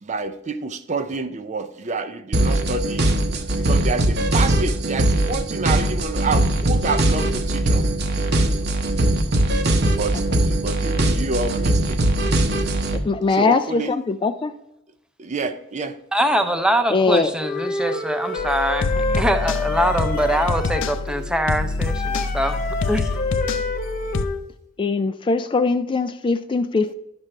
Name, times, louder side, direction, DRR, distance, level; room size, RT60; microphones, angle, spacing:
voice 1, 0.0-3.1 3.5-7.9 9.5-12.0 13.3-13.9 15.2-16.0, right 3 dB, 40° right, 0.5 m, -28 dB
sound 1, 2.3-13.0, right 1 dB, 60° right, 0.9 m, -20 dB
voice 2, 13.0-14.5 16.9-17.3 24.8-26.9, left 4 dB, 25° left, 0.3 m, -21 dB
voice 3, 16.1-23.1, right 1 dB, 5° right, 0.7 m, -23 dB
Wind instrument woodwind instrument, 17.4-21.0 21.8-24.4, left 3 dB, 45° left, 1.0 m, -28 dB
sound 2, 18.4-24.2, left 3 dB, 90° left, 0.6 m, -26 dB
11.5 x 6.1 x 3.3 m
head